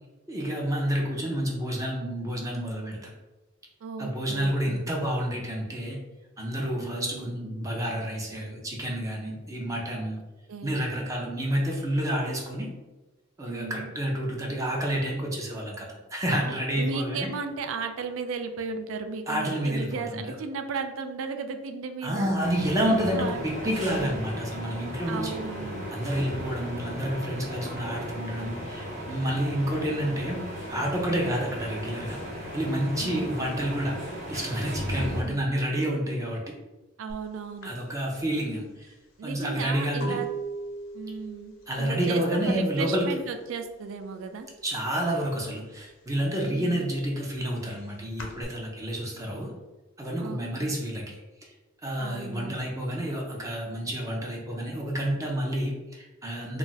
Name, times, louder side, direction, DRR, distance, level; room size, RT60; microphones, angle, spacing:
voice 1, 0.3-3.1 4.0-6.0 6.4-10.2 10.6-12.7 13.4-17.3 19.3-20.4 22.0-25.4 25.9-30.4 30.7-32.2 32.5-34.0 34.3-36.4 37.6-38.9 39.2-40.2 41.7-43.2 44.6-49.5 50.0-51.5 51.8-56.6, equal, 15° right, -1 dB, 0.5 m, -29 dB
voice 2, 3.8-4.8 6.8-7.3 10.5-10.8 13.5-13.9 16.4-22.3 23.1-23.4 25.1-25.9 31.2-31.5 33.0-33.3 34.9-35.4 37.0-37.7 39.2-40.3 40.9-44.5 46.4-46.9 50.2-50.7 52.0-52.7, right 5 dB, 75° right, 7 dB, 0.3 m, -35 dB
sound 1, 22.4-35.2, equal, 35° right, 0.8 m, -36 dB
sound 2, 37.1-37.3 37.6-43.3 43.5-44.1 44.3-45.5 45.9-48.4, right 4 dB, 70° left, 0.5 m, -39 dB
2.4 x 2.1 x 3.9 m, 1.1 s
head